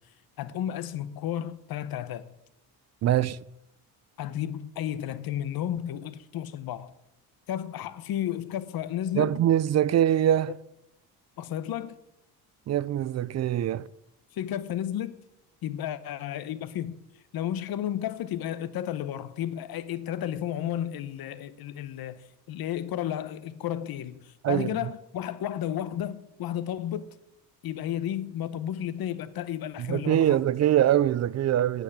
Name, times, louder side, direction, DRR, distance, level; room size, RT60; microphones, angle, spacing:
voice 1, 0.4-2.3 4.2-6.9 7.5-9.4 11.4-12.0 14.3-15.2 15.6-17.0 17.3-27.1 27.6-30.4, left 11 dB, 65° left, 0.9 m, -32 dB
voice 2, 3.0-3.4 9.1-10.6 12.7-13.9 24.4-24.7 29.8-31.8, right 11 dB, 45° right, 0.5 m, -23 dB
9.3 x 8.0 x 8.4 m
cardioid pair, 120°, 39 cm